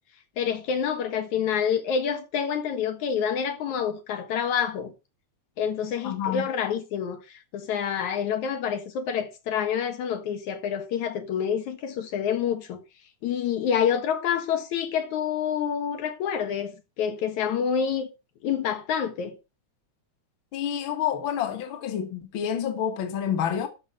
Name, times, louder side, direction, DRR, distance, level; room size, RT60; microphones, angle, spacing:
voice 1, 0.4-4.9 5.6-7.2 7.5-12.8 13.2-16.7 17.0-18.1 18.4-19.3, left 8 dB, 75° left, 2.9 m, -27 dB
voice 2, 6.0-6.5 20.5-23.7, left 9 dB, 50° left, 1.9 m, -28 dB
12.0 x 6.3 x 5.4 m
omnidirectional pair, 3.4 m